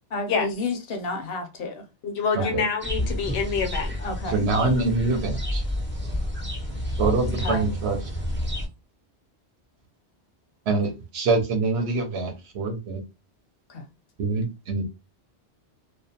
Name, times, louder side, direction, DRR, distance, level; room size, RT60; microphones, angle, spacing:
voice 1, 0.1-1.9 2.4-2.5 4.0-4.4 7.3-7.7 13.7-13.9, left 3 dB, 65° left, 0.7 m, -31 dB
voice 2, 2.0-4.0, left 5 dB, 90° left, 1.0 m, -26 dB
sound 1, 2.8-8.7, left 1 dB, 15° right, 0.4 m, -29 dB
voice 3, 4.3-5.6 7.0-8.0 10.7-13.0 14.2-14.9, right 3 dB, 70° right, 0.9 m, -25 dB
2.4 x 2.1 x 2.7 m
omnidirectional pair, 1.2 m